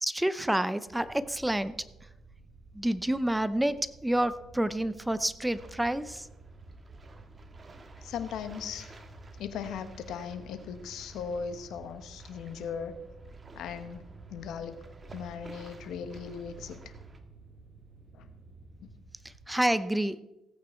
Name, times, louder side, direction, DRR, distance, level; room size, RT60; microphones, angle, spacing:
voice 1, 0.0-1.7 2.7-6.3 19.5-20.2, right 1 dB, 5° right, 14 dB, 0.6 m, -28 dB
sound 1, 0.9-19.6, right 3 dB, 55° right, 5.3 m, -54 dB
sound 2, 5.5-17.2, right 2 dB, 30° right, 1.6 m, -51 dB
voice 2, 8.0-9.0 9.4-12.9 13.5-14.0 14.3-14.8 15.1-16.9 18.1-18.3, left 7 dB, 80° left, 10 dB, 1.2 m, -38 dB
16.5 x 8.7 x 4.5 m, 0.96 s
cardioid pair, 90°, 0 cm